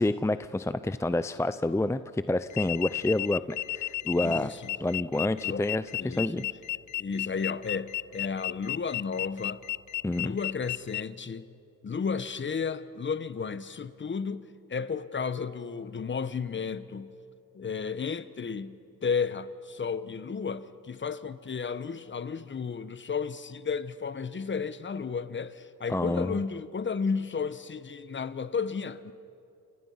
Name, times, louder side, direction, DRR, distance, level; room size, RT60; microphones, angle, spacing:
voice 1, 0.0-4.5 4.8-6.4 10.0-10.4 25.9-26.4, left 2 dB, 10° left, 0.6 m, -28 dB
sound 1, 2.5-11.0, left 14 dB, 60° left, 0.5 m, -33 dB
voice 2, 4.1-4.7 5.4-5.7 6.0-6.5 7.0-9.6 10.1-11.5 11.8-17.1 17.5-29.1, left 5 dB, 35° left, 1.2 m, -33 dB
29.5 x 26.0 x 5.8 m
cardioid pair, 80°, 33 cm